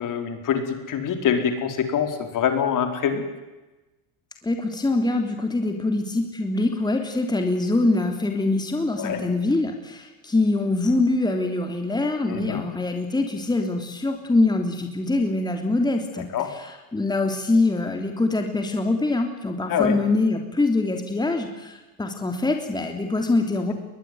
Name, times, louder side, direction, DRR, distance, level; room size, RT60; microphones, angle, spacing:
voice 1, 0.0-3.2 9.0-9.3 12.3-12.6 16.3-16.6 19.7-20.0, left 8 dB, 45° left, 6 dB, 4.6 m, -25 dB
voice 2, 4.4-23.7, left 2 dB, 10° left, 4 dB, 3.1 m, -24 dB
23.0 x 20.5 x 9.5 m, 1.1 s
supercardioid pair, 110°, 42 cm